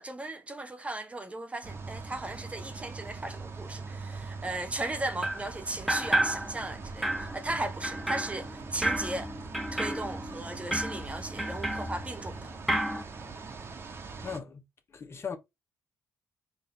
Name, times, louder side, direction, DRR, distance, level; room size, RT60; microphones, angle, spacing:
voice 1, 0.0-9.3 9.7-12.5, right 2 dB, 20° right, 0.8 m, -36 dB
sound 1, 1.6-14.4, right 4 dB, 40° right, 1.2 m, -42 dB
sound 2, 5.2-5.5 5.9-6.8 7.0-12.4 12.7-13.0, right 1 dB, ahead, 1.0 m, -32 dB
voice 2, 14.2-14.6 14.9-15.4, left 6 dB, 45° left, 1.2 m, -37 dB
4.6 x 2.7 x 3.9 m
hypercardioid pair, 45°, 6 cm